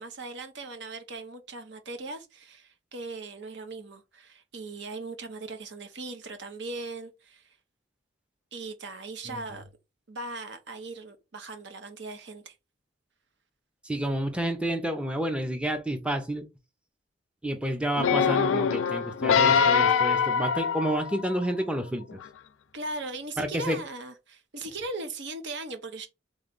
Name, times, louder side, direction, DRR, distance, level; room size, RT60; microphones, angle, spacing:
voice 1, 0.0-7.6 8.5-9.6 10.1-12.6 22.7-26.1, right 2 dB, 60° right, 0.9 m, -39 dB
voice 2, 13.8-16.4 17.4-22.2 23.4-23.8, right 1 dB, 5° right, 0.6 m, -30 dB
sound 1, 17.9-21.5 22.1-22.2, left 6 dB, 85° left, 0.5 m, -23 dB
3.8 x 3.2 x 3.9 m
head